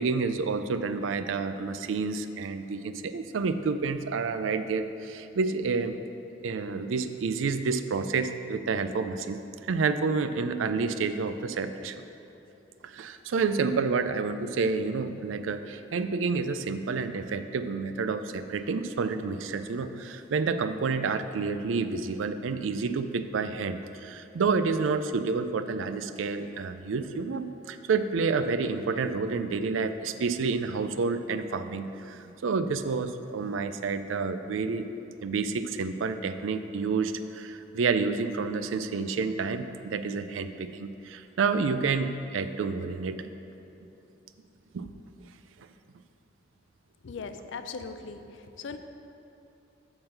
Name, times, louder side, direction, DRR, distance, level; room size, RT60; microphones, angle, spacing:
voice 1, 0.0-6.0 6.4-9.4 9.7-12.0 12.8-34.8 35.2-43.3 44.7-44.9, right 4 dB, 90° right, 10 dB, 0.4 m, -29 dB
voice 2, 47.0-48.3 48.6-48.8, left 5 dB, 75° left, 8 dB, 0.5 m, -38 dB
8.8 x 3.8 x 6.5 m, 2.9 s
head